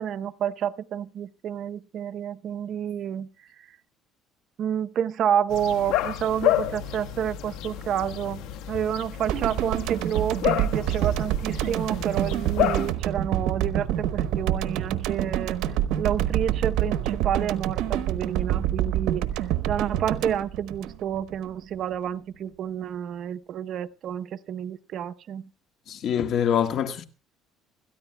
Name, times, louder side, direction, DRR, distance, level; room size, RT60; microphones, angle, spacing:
voice 1, 0.0-3.3 4.6-15.6 16.0-19.3 19.7-25.5, right 9 dB, 55° right, 0.7 m, -29 dB
sound 1, 5.5-12.9, left 12 dB, 75° left, 1.1 m, -30 dB
sound 2, 9.3-21.5 21.7-21.9, right 11 dB, 75° right, 1.0 m, -27 dB
voice 2, 25.9-27.0, left 9 dB, 55° left, 1.6 m, -25 dB
26.5 x 13.5 x 2.2 m
cardioid pair, 115°, 0 cm